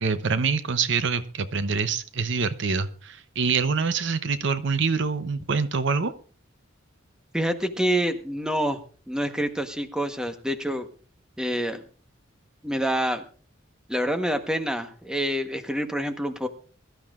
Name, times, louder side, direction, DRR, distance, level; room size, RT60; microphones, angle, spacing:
voice 1, 0.0-6.1, right 5 dB, 65° right, 12 dB, 0.8 m, -25 dB
voice 2, 7.3-8.8 9.1-10.9 11.4-11.8 12.6-13.2 13.9-16.5, equal, 5° right, 7 dB, 1.1 m, -27 dB
22.5 x 12.5 x 2.5 m, 0.39 s
head